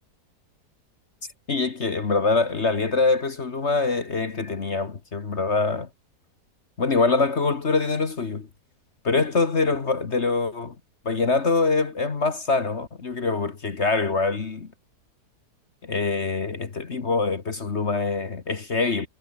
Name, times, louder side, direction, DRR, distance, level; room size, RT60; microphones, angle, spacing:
voice 1, 1.5-5.9 6.8-8.5 9.0-10.8 11.1-14.7 15.8-19.1, left 4 dB, 45° left, 1.8 m, -24 dB
omnidirectional pair, 1.8 m